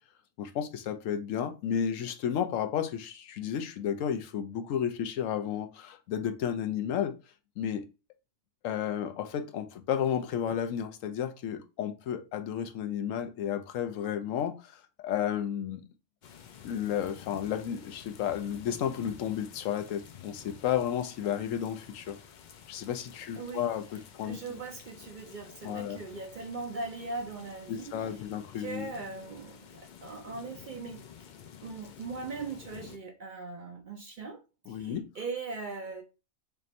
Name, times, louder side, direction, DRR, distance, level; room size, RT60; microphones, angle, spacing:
voice 1, 0.4-7.1 7.6-7.9 8.6-15.8 16.6-22.2 22.7-24.4 25.6-26.0 27.7-28.9 34.7-35.1, left 9 dB, 85° left, 1.0 m, -32 dB
sound 1, 16.2-33.0, left 8 dB, 65° left, 0.4 m, -51 dB
voice 2, 23.4-23.7 24.2-28.1 28.6-31.0 31.6-34.4 34.7-36.0, right 4 dB, 50° right, 0.6 m, -40 dB
3.4 x 2.5 x 4.1 m
omnidirectional pair, 1.3 m